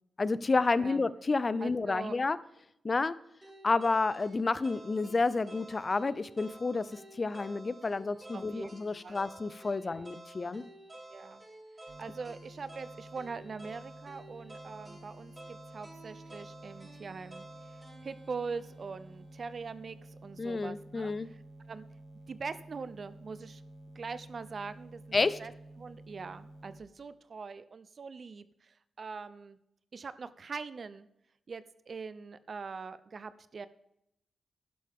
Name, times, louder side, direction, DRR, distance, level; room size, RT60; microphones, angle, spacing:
voice 1, 0.2-2.4 2.8-3.2 3.6-10.6 20.4-21.3 25.1-25.4, left 3 dB, 35° left, 16 dB, 0.6 m, -30 dB
voice 2, 1.6-2.2 8.3-8.7 9.0-9.2 9.8-10.1 11.1-11.4 12.0-21.4 21.7-21.8 22.3-23.6 23.9-25.5 25.8-29.6 29.9-31.1 31.5-33.7, right 5 dB, 50° right, 14 dB, 0.7 m, -42 dB
sound 1, 3.4-19.5, right 1 dB, 20° right, 4.8 m, -51 dB
sound 2, 11.9-26.8, right 1 dB, 75° right, 1.4 m, -52 dB
11.5 x 11.0 x 3.6 m, 0.79 s
cardioid pair, 100°, 0 cm